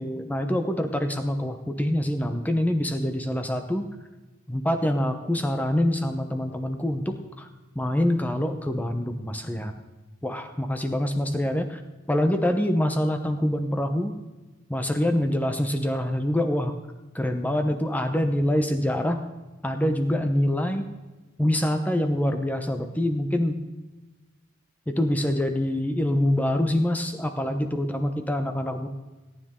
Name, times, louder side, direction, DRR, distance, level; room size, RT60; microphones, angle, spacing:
voice 1, 0.0-3.9 4.5-7.5 7.7-9.7 10.2-11.8 12.1-14.1 14.7-16.7 17.1-19.2 19.6-20.8 21.4-23.7 24.9-28.9, left 1 dB, 10° left, 6 dB, 0.8 m, -25 dB
17.5 x 9.8 x 3.7 m, 1.2 s
head